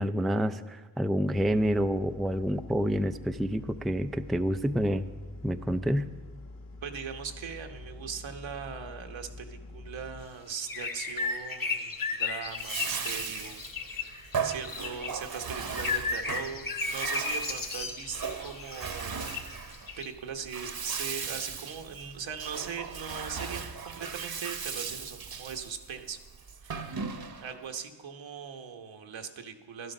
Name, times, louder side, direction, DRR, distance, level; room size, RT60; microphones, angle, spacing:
voice 1, 0.0-5.1 5.4-6.1, equal, ahead, 9 dB, 0.4 m, -28 dB
sound 1, 1.3-10.2, left 2 dB, 30° left, 1.0 m, -46 dB
voice 2, 6.8-13.6 14.0-19.4 19.6-26.2 26.6-27.0 27.4-29.9, right 6 dB, 75° right, 5 dB, 1.2 m, -40 dB
sound 2, 10.6-15.3 15.5-20.1, left 4 dB, 45° left, 1.7 m, -35 dB
Bathtub (filling or washing), 12.5-27.6, right 6 dB, 50° right, 1.0 m, -37 dB
12.0 x 11.0 x 5.4 m, 1.2 s
cardioid pair, 60°, 46 cm